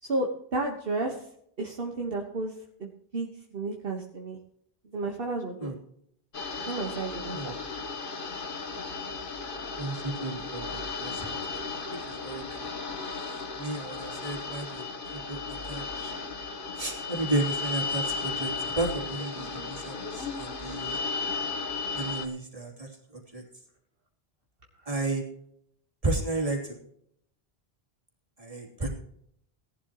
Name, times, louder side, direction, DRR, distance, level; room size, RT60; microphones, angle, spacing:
voice 1, 0.0-1.2 1.6-2.5 2.8-4.4 4.9-5.7 6.6-7.6, right 2 dB, 60° right, 1 dB, 1.6 m, -32 dB
sound 1, 6.3-22.3, left 4 dB, 55° left, 1.5 m, -35 dB
voice 2, 9.8-12.7 13.6-14.8 15.1-16.1 16.8-21.0 21.9-23.4 24.9-25.2 26.0-26.8 28.4-28.9, right 2 dB, 35° right, -1 dB, 3.3 m, -33 dB
18.0 x 11.5 x 3.0 m, 0.70 s
omnidirectional pair, 1.1 m